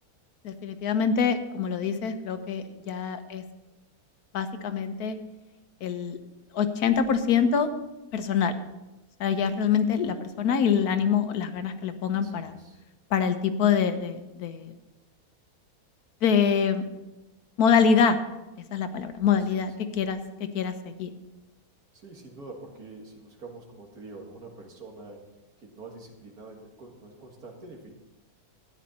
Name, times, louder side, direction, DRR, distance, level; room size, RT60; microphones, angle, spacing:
voice 1, 0.4-3.4 4.3-5.2 5.8-6.2 6.5-7.7 8.1-8.5 9.2-12.5 13.1-14.7 16.2-16.8 17.6-18.2 18.7-20.2 20.5-21.1, left 7 dB, 80° left, 9 dB, 1.3 m, -25 dB
voice 2, 12.1-12.8 19.3-19.6 21.9-25.2 25.6-27.9, right 3 dB, 70° right, 1 dB, 2.3 m, -46 dB
13.0 x 9.6 x 4.1 m, 1.0 s
omnidirectional pair, 1.6 m